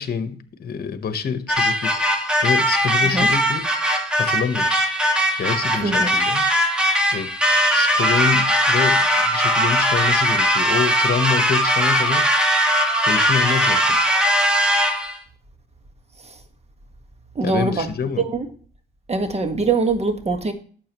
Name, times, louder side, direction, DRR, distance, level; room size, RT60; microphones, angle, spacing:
voice 1, 0.0-2.0 2.4-3.6 4.2-4.9 5.4-6.4 7.1-7.3 7.7-12.4 13.0-14.0 17.4-18.2, left 7 dB, 50° left, 1.2 m, -26 dB
sound 1, 1.5-15.2, equal, 5° right, 2.1 m, -19 dB
voice 2, 3.0-3.3 5.8-6.2 16.2-16.4 17.4-17.9 18.2-18.5 19.1-20.5, right 3 dB, 30° right, 1.6 m, -23 dB
11.5 x 7.5 x 3.1 m
cardioid pair, 90°, 20 cm